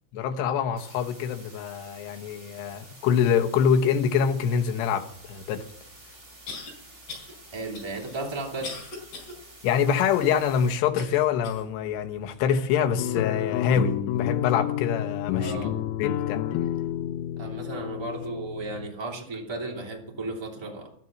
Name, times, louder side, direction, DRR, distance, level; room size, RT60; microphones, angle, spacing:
voice 1, 0.1-5.7 9.6-15.6 16.0-16.4, left 7 dB, 70° left, 2.8 m, -25 dB
sound 1, 0.8-10.8, right 2 dB, 15° right, 2.7 m, -50 dB
sound 2, 5.5-5.6 6.5-6.7 7.1-7.3 7.7-9.3 9.8-9.9 10.9-11.7 12.3-12.4 13.1-13.2, left 3 dB, 45° left, 5.6 m, -40 dB
voice 2, 7.5-8.7 15.4-15.7 17.4-20.9, right 2 dB, 35° right, 0.4 m, -34 dB
sound 3, 13.0-18.9, left 11 dB, 90° left, 3.4 m, -30 dB
12.5 x 10.5 x 7.2 m
omnidirectional pair, 5.7 m